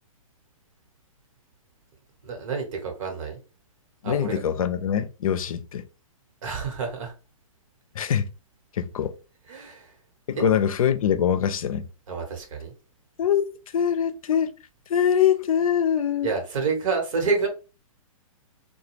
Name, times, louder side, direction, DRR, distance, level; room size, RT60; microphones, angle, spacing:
voice 1, 2.2-3.4 4.0-4.4 6.4-7.1 9.5-9.9 10.3-10.5 12.1-12.7 16.2-17.5, right 4 dB, 65° right, 1.1 m, -28 dB
voice 2, 4.0-5.9 7.9-8.3 8.7-9.1 10.3-11.9 13.2-13.5 13.7-14.5 14.9-16.3, left 8 dB, 70° left, 0.5 m, -23 dB
2.4 x 2.2 x 3.0 m
hypercardioid pair, 135°, 18 cm